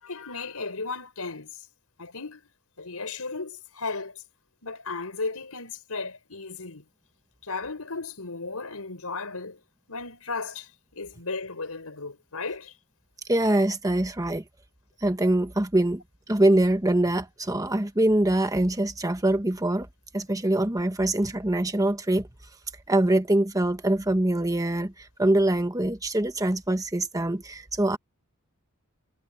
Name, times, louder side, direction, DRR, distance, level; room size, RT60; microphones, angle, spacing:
voice 1, 0.0-1.7 2.0-2.5 2.8-4.2 4.6-6.8 7.4-9.6 9.9-12.8, left 4 dB, 90° left, 4.8 m, -35 dB
voice 2, 13.3-14.4 15.0-16.0 16.3-19.9 20.1-22.3 22.9-28.0, right 1 dB, 15° right, 1.2 m, -24 dB
head